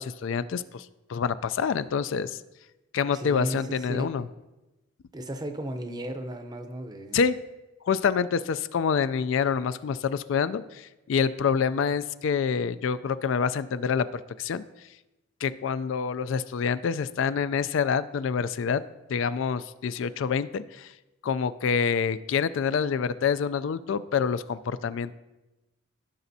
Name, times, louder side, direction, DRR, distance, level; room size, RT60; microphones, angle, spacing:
voice 1, 0.0-2.4 2.9-4.3 7.1-7.4 7.9-14.6 15.4-18.8 19.1-20.9 21.2-25.1, left 6 dB, 65° left, 15 dB, 0.3 m, -27 dB
voice 2, 3.1-4.1 5.1-7.2, right 1 dB, 20° right, 7 dB, 0.6 m, -35 dB
15.5 x 5.9 x 2.7 m, 1.0 s
head